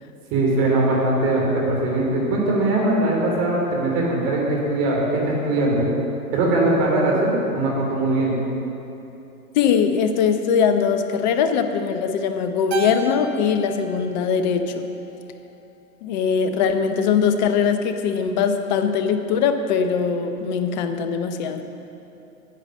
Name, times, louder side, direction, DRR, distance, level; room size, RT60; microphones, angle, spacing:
voice 1, 0.3-5.8 6.3-8.3, right 2 dB, 30° right, -3 dB, 3.0 m, -21 dB
voice 2, 9.5-15.0 16.0-21.6, left 6 dB, 30° left, 8 dB, 0.7 m, -21 dB
Keyboard (musical), 12.7-15.2, right 2 dB, 50° right, 1.2 m, -33 dB
9.9 x 8.9 x 6.4 m, 2.8 s
figure-of-eight pair, 120°, 44 cm